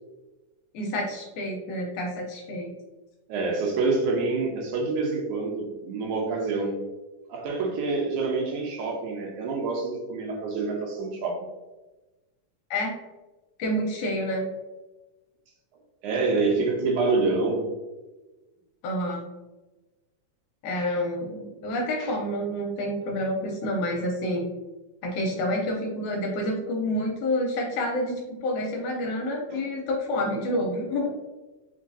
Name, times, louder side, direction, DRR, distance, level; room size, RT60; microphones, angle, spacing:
voice 1, 0.7-2.7 12.7-13.0 13.6-14.5 18.8-19.3 20.6-24.5 25.0-31.1, left 1 dB, 75° left, 0 dB, 1.9 m, -28 dB
voice 2, 3.3-6.8 7.3-11.5 16.0-17.7 29.5-29.7 31.0-31.1, right 3 dB, 80° right, 0 dB, 2.1 m, -27 dB
5.1 x 3.0 x 2.6 m, 1.1 s
omnidirectional pair, 3.7 m